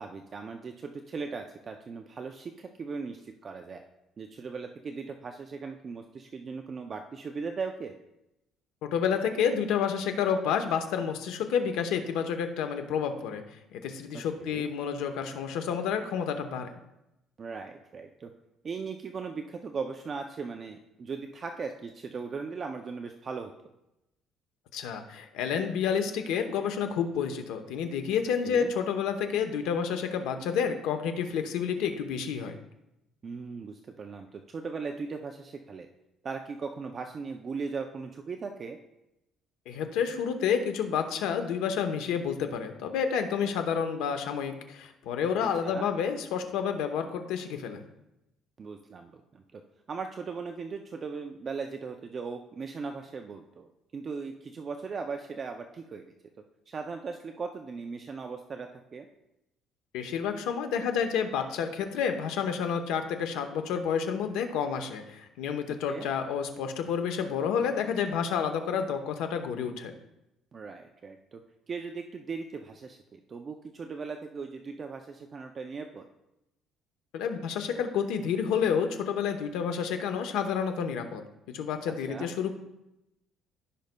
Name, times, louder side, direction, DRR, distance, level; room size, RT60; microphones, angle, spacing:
voice 1, 0.0-3.8 4.2-7.9 14.1-14.7 17.4-18.3 18.6-23.5 28.4-28.7 33.2-35.9 36.2-38.8 45.6-45.9 48.6-49.6 49.9-56.0 56.7-59.1 65.7-66.1 70.5-71.4 71.7-76.0 82.1-82.3, right 5 dB, 25° right, 5 dB, 0.4 m, -38 dB
voice 2, 8.8-13.4 13.7-16.7 24.7-32.5 39.7-47.8 59.9-69.9 77.1-81.2 81.5-82.5, left 7 dB, 90° left, 7 dB, 0.8 m, -29 dB
15.0 x 5.3 x 2.2 m, 0.90 s
cardioid pair, 170°, 0 cm